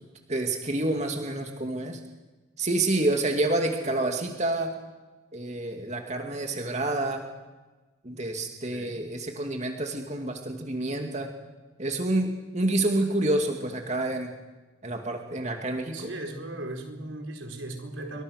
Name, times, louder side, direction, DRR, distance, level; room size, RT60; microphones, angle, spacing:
voice 1, 0.3-2.0 2.6-4.7 5.3-7.3 8.0-11.3 11.8-14.3 14.8-16.1, right 2 dB, 35° right, 3 dB, 2.3 m, -28 dB
voice 2, 15.9-18.2, right 2 dB, 90° right, 4 dB, 4.4 m, -37 dB
29.0 x 24.5 x 6.5 m, 1.2 s
head